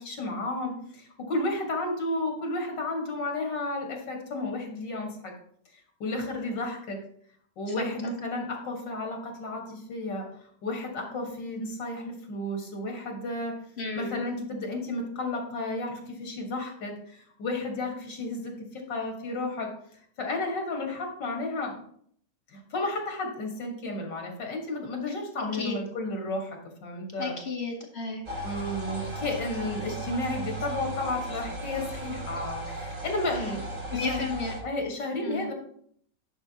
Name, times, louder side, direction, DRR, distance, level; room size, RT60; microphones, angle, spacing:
voice 1, 0.0-5.3 6.0-7.0 7.6-10.3 10.6-13.6 13.9-19.7 20.2-21.8 22.5-27.4 28.4-33.7 33.9-34.2 34.6-35.5, left 2 dB, 80° left, 1 dB, 2.3 m, -32 dB
voice 2, 13.8-14.3 25.5-25.8 27.2-28.2 33.3-33.5 33.9-34.5 35.2-35.5, left 4 dB, 45° left, 3 dB, 1.0 m, -33 dB
sound 1, 28.3-34.6, right 1 dB, 45° right, 2.9 m, -36 dB
10.5 x 6.1 x 2.8 m, 0.62 s
omnidirectional pair, 1.9 m